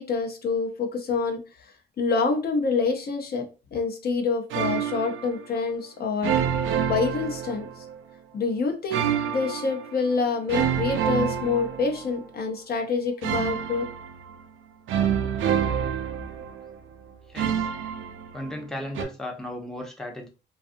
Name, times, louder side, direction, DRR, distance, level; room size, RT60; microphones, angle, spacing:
voice 1, 0.0-1.7 2.0-3.5 3.7-6.4 6.9-7.7 8.3-13.9, left 4 dB, 50° left, 4 dB, 0.6 m, -27 dB
sound 1, 4.5-5.4 6.2-8.0 8.9-9.9 10.5-12.3 13.2-14.4 14.9-16.7 17.4-18.6 18.9-19.0, right 8 dB, 80° right, 0.5 m, -27 dB
voice 2, 17.0-17.7 18.3-20.3, left 1 dB, ahead, 1 dB, 0.6 m, -36 dB
2.6 x 2.4 x 2.5 m, 0.32 s
cardioid pair, 90°, 20 cm